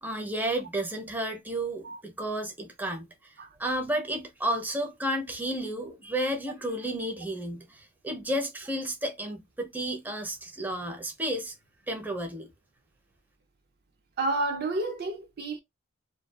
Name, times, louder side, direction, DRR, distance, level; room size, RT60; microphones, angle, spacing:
voice 1, 0.0-3.3 3.6-11.5 11.9-12.5, right 1 dB, 10° right, 0.6 m, -32 dB
voice 2, 14.2-15.6, right 2 dB, 55° right, 0.5 m, -30 dB
2.5 x 2.3 x 2.2 m
head